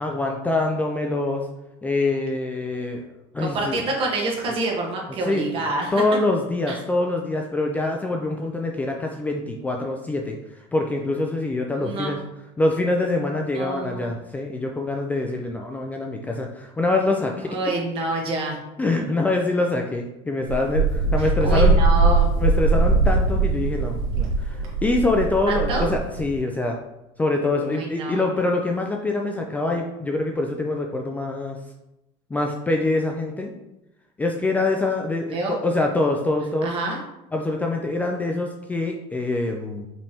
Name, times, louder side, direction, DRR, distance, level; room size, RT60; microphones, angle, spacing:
voice 1, 0.0-1.5 1.8-3.1 3.3-3.8 4.5-4.6 5.3-5.5 5.9-12.2 12.6-17.6 18.8-21.8 22.4-26.8 27.2-31.6 32.3-33.5 34.2-36.7 37.3-39.9, left 2 dB, 10° left, 1 dB, 0.4 m, -25 dB
voice 2, 3.4-5.9 6.7-6.8 11.7-12.1 13.5-14.1 17.5-18.6 21.2-22.3 25.5-25.9 27.7-28.3 35.3-35.6 36.6-37.0, right 2 dB, 40° right, -1 dB, 1.2 m, -27 dB
Wind, 20.5-26.4, right 3 dB, 75° right, 1.4 m, -21 dB
5.3 x 3.3 x 2.8 m, 0.92 s
supercardioid pair, 125°, 14 cm